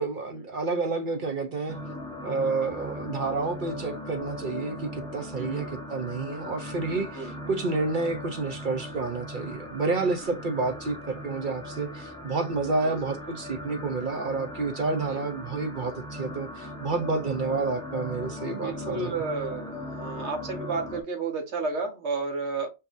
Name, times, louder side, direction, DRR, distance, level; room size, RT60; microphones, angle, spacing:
voice 1, 0.0-1.8 2.2-19.1, right 3 dB, 50° right, 0.7 m, -29 dB
sound 1, 1.7-21.0, left 1 dB, 5° left, 0.4 m, -38 dB
voice 2, 5.3-5.7 6.9-7.4 10.2-10.4 12.8-13.0 15.1-15.2 18.4-22.7, right 4 dB, 65° right, 1.3 m, -32 dB
5.5 x 2.8 x 2.5 m
omnidirectional pair, 1.3 m